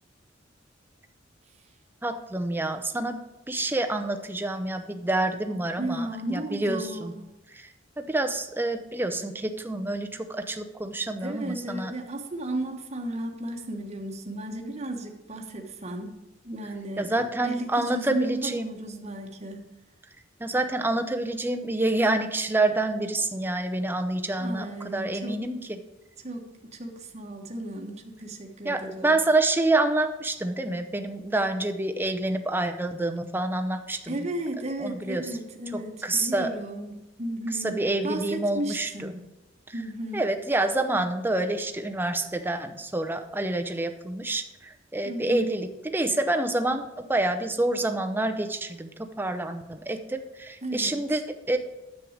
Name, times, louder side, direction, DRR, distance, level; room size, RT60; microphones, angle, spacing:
voice 1, 2.0-3.2 3.5-7.1 7.5-7.7 8.0-11.9 17.0-18.7 20.4-25.8 28.6-34.3 34.8-35.2 35.7-36.5 37.6-39.1 40.1-51.6, right 2 dB, 10° right, 6 dB, 0.7 m, -27 dB
voice 2, 5.8-7.2 11.2-16.2 16.4-19.7 24.4-25.4 26.2-29.2 34.1-39.4 39.7-40.3 45.0-45.6 50.6-51.2, right 1 dB, 35° right, 2 dB, 1.2 m, -34 dB
10.0 x 7.6 x 5.0 m, 0.99 s
head